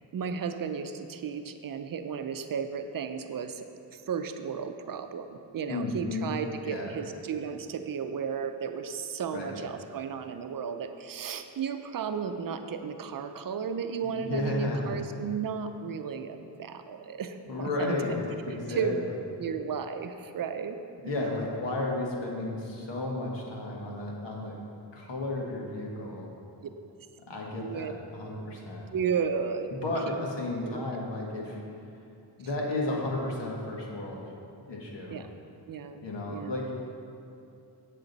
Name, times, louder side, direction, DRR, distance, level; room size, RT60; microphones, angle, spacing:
voice 1, 0.1-3.7 3.9-17.9 18.7-19.0 19.4-20.8 21.0-21.3 27.6-27.9 28.9-29.7 30.1-30.2 30.6-30.8 35.1-35.3 35.7-36.0 36.3-36.6, right 6 dB, 55° right, 8 dB, 0.6 m, -34 dB
voice 2, 5.7-6.3 6.6-6.9 9.3-9.5 14.0-15.0 17.5-18.2 18.5-18.9 21.1-24.6 24.9-26.3 27.3-28.9 29.7-31.6 32.4-34.2 34.7-35.2 36.0-36.7, left 2 dB, 80° left, -1 dB, 1.6 m, -33 dB
8.5 x 7.5 x 4.0 m, 2.6 s
cardioid pair, 90°, 42 cm